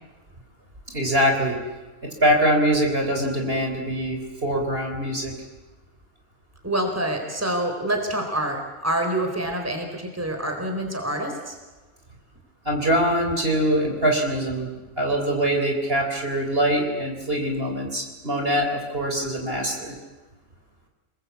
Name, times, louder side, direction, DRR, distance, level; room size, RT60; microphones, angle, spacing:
voice 1, 0.9-1.6 2.0-5.3 12.6-19.9, equal, 40° right, 3 dB, 4.1 m, -23 dB
voice 2, 6.6-11.6, right 1 dB, 10° right, 4 dB, 4.1 m, -26 dB
29.5 x 20.5 x 8.4 m, 1.2 s
omnidirectional pair, 1.5 m